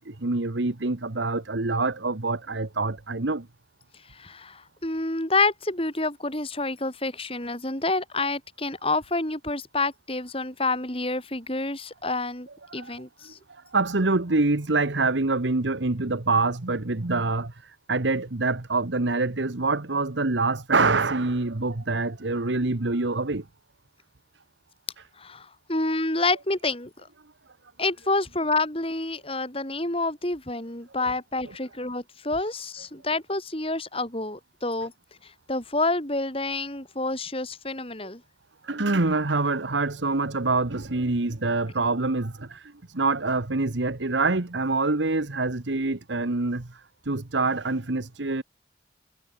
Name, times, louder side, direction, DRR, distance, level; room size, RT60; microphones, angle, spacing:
voice 1, 0.0-3.5 12.7-12.9 13.2-23.4 31.0-31.1 38.6-48.4, right 3 dB, 80° right, 1.4 m, -26 dB
voice 2, 4.2-12.5 12.7-13.4 25.2-26.9 27.8-34.9 35.5-38.2, left 2 dB, 30° left, 5.1 m, -28 dB
head